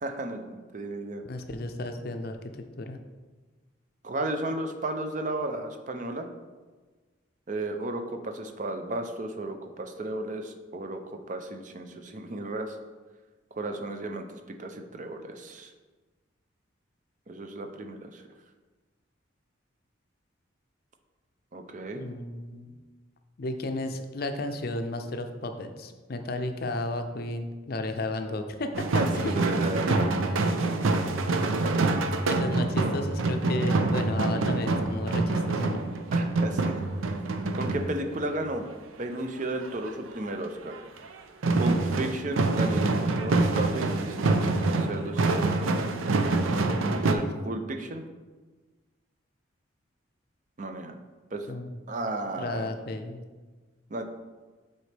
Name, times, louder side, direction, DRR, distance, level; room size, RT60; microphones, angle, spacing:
voice 1, 0.0-1.2 4.0-6.3 7.5-12.8 13.6-15.7 17.3-18.2 21.5-22.0 28.9-30.1 31.4-32.3 36.1-37.2 37.5-38.7 39.0-40.8 41.6-45.6 47.0-48.0 50.6-51.0 51.3-51.5 51.9-52.7 53.9-54.0, right 2 dB, 40° right, 6 dB, 0.5 m, -34 dB
voice 2, 1.3-3.0 21.9-22.8 23.4-29.4 29.9-30.4 32.2-35.8 51.5-51.8 52.4-53.2, left 2 dB, 50° left, 7 dB, 0.5 m, -33 dB
sound 1, 28.7-38.3 39.6-39.9 40.3-40.4 40.7-41.1 41.4-47.2, right 3 dB, 85° right, 0.5 m, -26 dB
7.8 x 4.2 x 3.3 m, 1.3 s
head